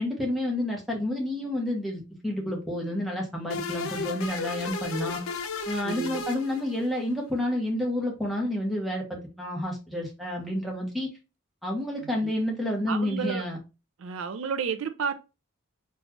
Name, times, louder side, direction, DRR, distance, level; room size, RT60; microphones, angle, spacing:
voice 1, 0.0-5.2 5.7-11.1 11.6-13.6, left 1 dB, ahead, 0.9 m, -30 dB
sound 1, 3.5-7.1, left 4 dB, 80° left, 0.6 m, -34 dB
voice 2, 5.8-6.2 12.0-12.3 12.9-13.4 14.0-15.1, right 6 dB, 70° right, 0.4 m, -31 dB
4.1 x 2.3 x 2.9 m
head